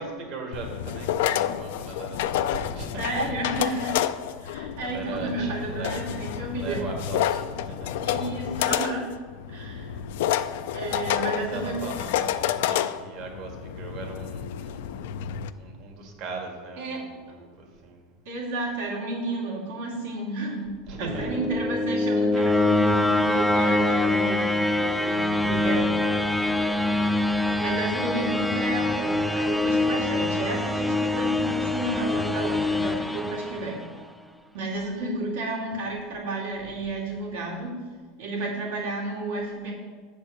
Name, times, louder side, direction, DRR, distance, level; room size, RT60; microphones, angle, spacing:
voice 1, 0.0-2.9 4.8-6.1 6.4-8.1 11.0-15.1 15.5-18.0 20.9-21.6 25.2-26.0, right 3 dB, 55° right, 1 dB, 1.7 m, -39 dB
sound 1, 0.5-15.5, left 10 dB, 80° left, 0.3 m, -29 dB
voice 2, 3.0-4.1 4.4-6.8 8.0-9.1 9.5-9.9 10.7-11.8 16.8-17.0 18.3-25.9 27.6-33.8 34.5-37.7 38.2-39.7, right 2 dB, 85° right, -3 dB, 2.3 m, -31 dB
sound 2, 21.0-34.0, left 2 dB, 5° left, 0.4 m, -24 dB
7.6 x 4.4 x 6.3 m, 1.5 s
supercardioid pair, 130°, 0 cm